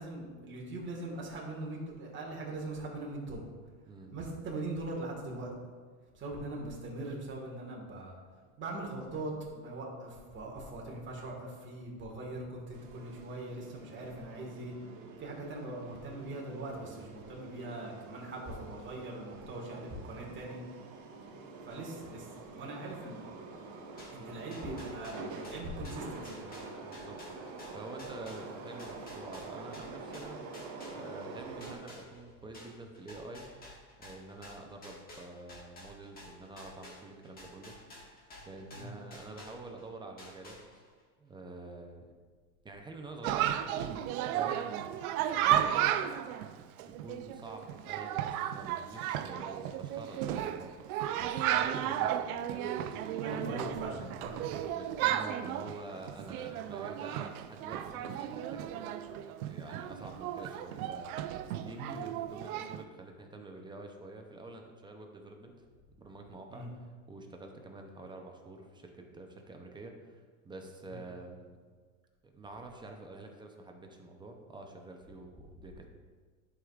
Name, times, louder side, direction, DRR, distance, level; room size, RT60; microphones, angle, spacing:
voice 1, 0.0-3.4 4.1-5.5 6.1-8.2 8.6-14.7 15.2-20.6 21.6-23.3 24.1-26.5 38.7-38.9 53.2-54.7 61.7-61.9 66.5-66.7 70.9-71.0, right 2 dB, 25° right, -2 dB, 1.7 m, -41 dB
sound 1, 12.7-31.8, right 3 dB, 55° right, 1.3 m, -46 dB
sound 2, 24.0-31.3 31.6-39.9 40.2-41.0, left 1 dB, 20° left, 1.6 m, -51 dB
voice 2, 26.8-33.5 34.0-37.7 38.0-40.9 41.2-42.0 42.6-45.0 45.3-46.0 46.8-54.2 54.7-59.2 59.4-65.6 66.0-66.7 67.1-71.6 72.2-75.9, right 2 dB, 10° right, 2 dB, 0.6 m, -48 dB
Chatter, 43.2-62.8, right 11 dB, 80° right, 0.6 m, -34 dB
11.0 x 4.9 x 2.4 m, 1.5 s
supercardioid pair, 125°, 43 cm